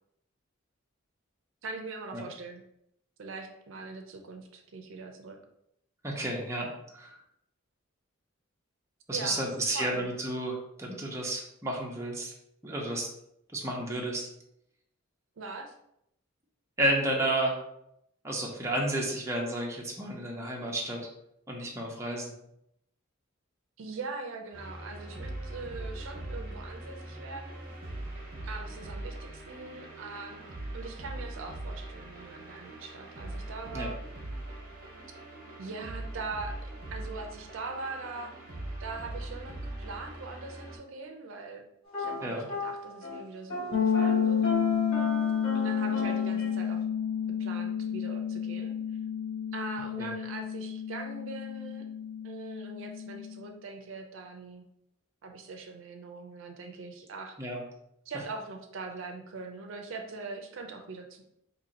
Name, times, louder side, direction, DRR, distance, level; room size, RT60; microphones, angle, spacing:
voice 1, 1.6-2.6 3.2-5.4 9.1-10.1 15.4-15.7 23.8-27.6 28.4-34.0 35.6-38.3 38.8-41.6 42.0-44.4 45.5-46.8 47.4-48.7 49.5-51.9 52.2-54.6 55.2-57.4 58.1-61.2, right 3 dB, 65° right, 4 dB, 0.5 m, -41 dB
voice 2, 6.0-6.7 6.9-7.2 9.1-12.3 12.6-13.1 13.5-14.2 16.8-17.5 18.2-21.0 21.5-22.3 33.7-33.9 42.2-42.5 50.0-50.1 57.4-57.6, right 1 dB, 15° right, -2 dB, 0.6 m, -31 dB
sound 1, 24.5-40.8, right 1 dB, 45° right, 0.8 m, -41 dB
sound 2, 41.9-43.2 43.5-46.5, left 2 dB, 25° left, 1.3 m, -36 dB
sound 3, 43.7-53.4, left 7 dB, 50° left, 0.5 m, -30 dB
2.8 x 2.7 x 4.0 m, 0.77 s
head